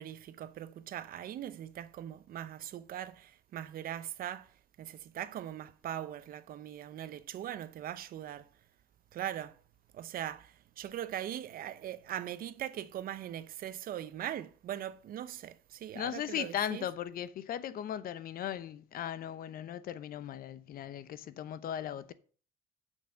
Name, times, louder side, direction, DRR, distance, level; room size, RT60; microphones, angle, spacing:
voice 1, 0.0-4.5 4.8-8.5 9.1-9.6 9.9-16.9, right 11 dB, 60° right, 0.8 m, -40 dB
voice 2, 15.9-22.1, left 10 dB, 60° left, 0.9 m, -37 dB
7.0 x 6.5 x 7.7 m
cardioid pair, 110°, 17 cm